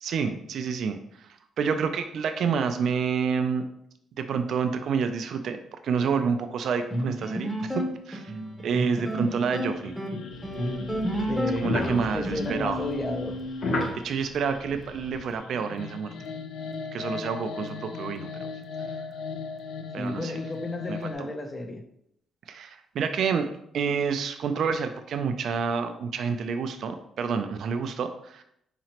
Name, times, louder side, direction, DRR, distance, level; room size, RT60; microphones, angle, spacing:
voice 1, 0.0-3.6 4.2-5.6 5.8-7.7 8.1-8.3 8.6-9.9 11.6-12.8 14.0-16.1 16.9-18.3 19.9-20.4 20.9-21.3 22.5-23.5 23.7-28.4, right 6 dB, 65° right, 8 dB, 0.3 m, -28 dB
sound 1, 6.9-13.9, equal, ahead, 0.8 m, -31 dB
sound 2, 9.2-21.2, left 5 dB, 80° left, 0.4 m, -40 dB
sound 3, 10.3-15.3, left 2 dB, 60° left, 0.8 m, -34 dB
voice 2, 11.3-13.4 20.0-21.8, left 2 dB, 30° left, 6 dB, 0.5 m, -32 dB
4.0 x 2.9 x 2.9 m, 0.74 s
cardioid pair, 90°, 0 cm